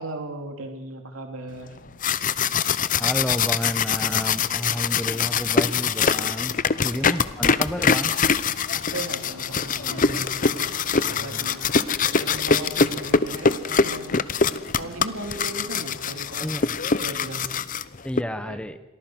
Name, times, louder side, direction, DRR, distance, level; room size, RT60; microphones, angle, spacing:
voice 1, 0.0-1.8 6.9-7.1 8.9-10.3 11.1-11.7 12.2-14.3 14.8-16.5 17.0-17.6 18.4-18.6, right 2 dB, 75° right, 4 dB, 3.2 m, -36 dB
sound 1, 1.8-18.2, left 5 dB, 40° left, 0.7 m, -23 dB
voice 2, 3.0-6.5 6.8-8.2 11.0-11.7 16.4-16.7 18.0-18.8, equal, 5° left, 11 dB, 1.2 m, -31 dB
sound 2, 5.5-16.7, left 3 dB, 85° left, 3.5 m, -46 dB
28.0 x 22.5 x 6.3 m, 1.1 s
head